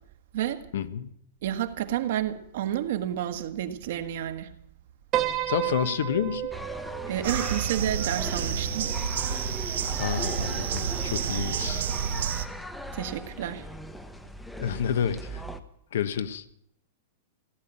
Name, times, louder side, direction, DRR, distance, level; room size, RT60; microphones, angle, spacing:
voice 1, 0.7-1.1 5.3-6.5 10.0-11.9 14.6-15.4 15.9-16.4, left 8 dB, 80° left, 13 dB, 1.1 m, -29 dB
voice 2, 1.4-4.5 7.1-8.8 12.9-13.7, right 11 dB, 60° right, 8 dB, 1.5 m, -30 dB
Piano, 5.1-9.5, right 12 dB, 25° right, 1.1 m, -33 dB
sound 1, 6.5-15.6, equal, 5° left, 0.8 m, -39 dB
sound 2, 7.2-12.5, right 8 dB, 80° right, 1.3 m, -30 dB
15.5 x 10.5 x 8.8 m, 0.75 s
supercardioid pair, 160°, 0 cm